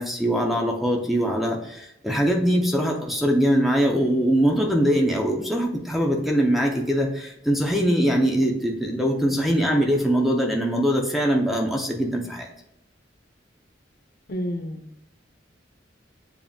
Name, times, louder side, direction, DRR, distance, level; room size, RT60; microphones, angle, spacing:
voice 1, 0.0-12.5, equal, ahead, 1 dB, 0.5 m, -22 dB
voice 2, 14.3-15.0, equal, 55° left, 4 dB, 0.7 m, -31 dB
6.9 x 2.6 x 2.7 m, 0.80 s
head